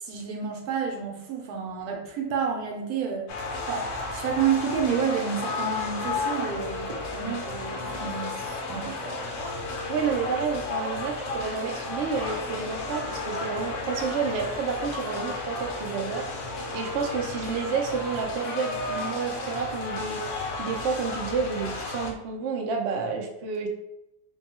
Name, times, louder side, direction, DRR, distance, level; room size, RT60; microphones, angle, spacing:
voice 1, 0.0-3.3 3.7-6.9 7.1-9.0, right 7 dB, 85° right, 2 dB, 1.2 m, -29 dB
sound 1, 3.3-22.1, left 3 dB, 65° left, 0.9 m, -33 dB
voice 2, 9.9-16.3 16.7-20.3 20.6-23.7, right 5 dB, 60° right, 1 dB, 0.7 m, -30 dB
3.6 x 2.2 x 4.1 m, 0.88 s
omnidirectional pair, 1.6 m